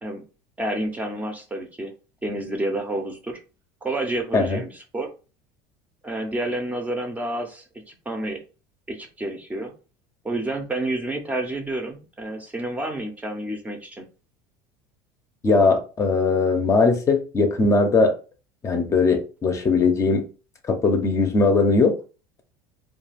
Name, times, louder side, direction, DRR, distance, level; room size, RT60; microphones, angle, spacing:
voice 1, 0.6-1.9 2.2-3.4 3.8-5.1 6.0-8.4 8.9-9.7 10.2-14.1, right 1 dB, 15° right, 4 dB, 0.6 m, -29 dB
voice 2, 15.4-18.1 18.6-20.3 20.7-22.0, left 3 dB, 30° left, 5 dB, 0.6 m, -19 dB
2.3 x 2.3 x 3.3 m, 0.34 s
supercardioid pair, 105°, 11 cm